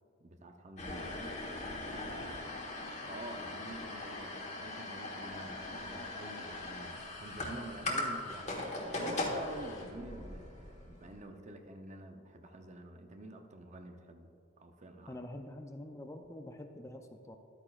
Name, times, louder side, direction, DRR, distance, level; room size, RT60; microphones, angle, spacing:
voice 1, 0.2-1.4 1.9-2.7 3.1-8.6 9.0-14.3 14.6-15.2, right 1 dB, 35° right, 5 dB, 0.6 m, -48 dB
sound 1, 0.8-11.1, left 2 dB, 35° left, 1.3 m, -40 dB
voice 2, 15.1-17.4, left 1 dB, 15° left, 5 dB, 0.4 m, -46 dB
12.0 x 8.8 x 2.4 m, 2.5 s
head